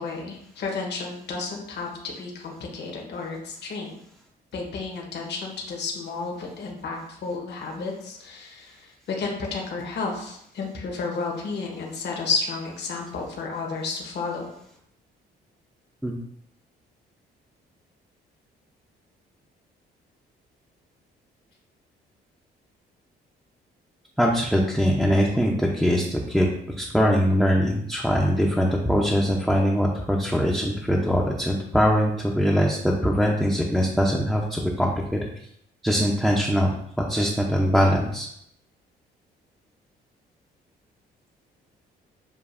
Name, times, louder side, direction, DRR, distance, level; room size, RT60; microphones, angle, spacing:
voice 1, 0.0-4.0 4.5-14.5, left 4 dB, 60° left, 0 dB, 1.1 m, -32 dB
voice 2, 24.2-26.5 26.8-34.9 35.8-38.3, equal, ahead, -2 dB, 0.6 m, -22 dB
6.9 x 2.5 x 2.5 m, 0.73 s
cardioid pair, 90°, 20 cm